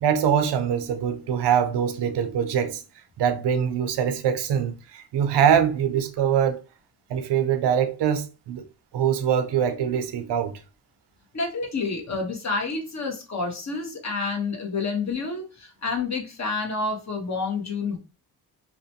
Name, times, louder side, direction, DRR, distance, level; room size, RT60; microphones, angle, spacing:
voice 1, 0.0-2.8 3.2-6.6 7.1-8.7 8.9-10.6, right 8 dB, 80° right, 0.6 m, -23 dB
voice 2, 11.3-18.0, left 4 dB, 40° left, 1.0 m, -29 dB
2.9 x 2.1 x 2.8 m
cardioid pair, 75°, 41 cm